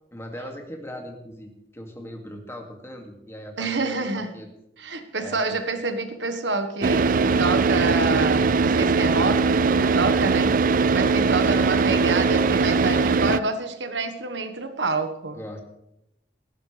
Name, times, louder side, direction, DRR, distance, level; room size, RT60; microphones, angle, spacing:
voice 1, 0.1-4.5 5.2-5.6 15.3-15.6, equal, 15° left, 2 dB, 2.3 m, -39 dB
voice 2, 3.6-4.3 4.8-15.4, right 3 dB, 85° right, 7 dB, 1.4 m, -28 dB
Car / Idling, 6.8-13.4, right 4 dB, 50° right, 0.5 m, -20 dB
18.5 x 15.0 x 3.4 m, 0.81 s
head